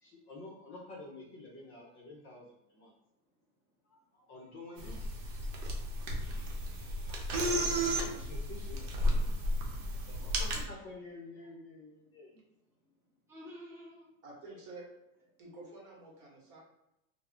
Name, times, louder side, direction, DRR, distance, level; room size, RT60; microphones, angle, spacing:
voice 1, 0.0-2.9 3.9-5.2 7.1-7.4 7.9-9.3 9.9-12.4 14.4-14.6, left 2 dB, 30° left, -2 dB, 0.6 m, -50 dB
sound 1, 4.8-10.6, equal, 65° right, 0.8 m, -33 dB
voice 2, 6.2-7.4 10.4-10.8 13.3-14.1, equal, 5° right, -6 dB, 0.9 m, -54 dB
voice 3, 14.2-14.9 15.4-16.6, right 2 dB, 45° right, -3 dB, 1.1 m, -49 dB
2.3 x 2.0 x 3.5 m, 0.87 s
supercardioid pair, 120°, 42 cm